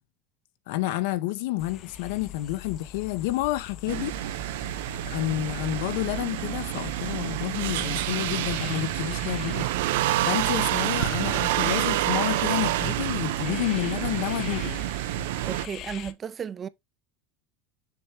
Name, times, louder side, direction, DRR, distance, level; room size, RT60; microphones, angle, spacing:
voice 1, 0.7-4.1 5.1-9.7 10.3-14.8, left 16 dB, 75° left, 0.8 m, -29 dB
sound 1, 1.6-16.1, left 10 dB, 45° left, 0.6 m, -43 dB
sound 2, 3.9-15.7, right 15 dB, 85° right, 0.5 m, -28 dB
voice 2, 15.4-16.7, right 7 dB, 25° right, 0.3 m, -34 dB
7.0 x 3.0 x 4.8 m
supercardioid pair, 145°, 0 cm